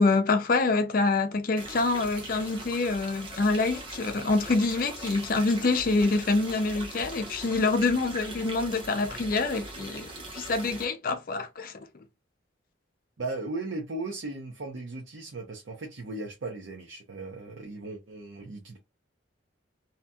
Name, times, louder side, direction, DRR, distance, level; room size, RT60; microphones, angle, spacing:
voice 1, 0.0-11.7, left 3 dB, 50° left, 0.5 m, -26 dB
sound 1, 1.6-10.9, right 2 dB, 25° right, 0.8 m, -41 dB
voice 2, 13.2-18.8, right 2 dB, 90° right, 0.7 m, -37 dB
2.8 x 2.6 x 2.3 m
head